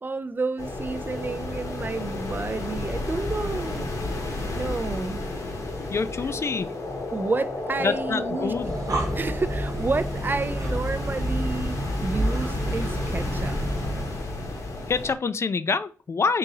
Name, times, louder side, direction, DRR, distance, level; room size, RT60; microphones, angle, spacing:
voice 1, 0.0-3.9 4.5-5.3 7.1-8.5 9.1-13.6, right 3 dB, 35° right, 0.3 m, -30 dB
sound 1, 0.6-15.1, left 2 dB, 75° left, 1.1 m, -32 dB
voice 2, 5.9-6.7 7.8-8.8 14.9-16.4, left 4 dB, 50° left, 0.3 m, -26 dB
Breathing, 8.5-14.3, right 1 dB, 65° right, 0.9 m, -29 dB
sound 2, 9.0-11.0, equal, 15° right, 1.0 m, -43 dB
3.8 x 2.7 x 4.0 m
cardioid pair, 65°, 6 cm